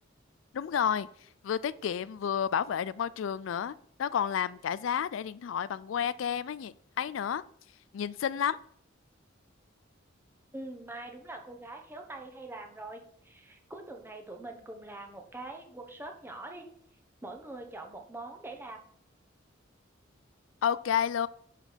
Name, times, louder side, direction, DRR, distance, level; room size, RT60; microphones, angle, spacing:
voice 1, 0.5-1.1 1.4-7.4 7.9-8.6 20.6-21.3, left 8 dB, 85° left, 0.3 m, -31 dB
voice 2, 10.5-16.7 17.2-18.8, right 2 dB, 10° right, 1.1 m, -43 dB
10.5 x 4.1 x 5.1 m
head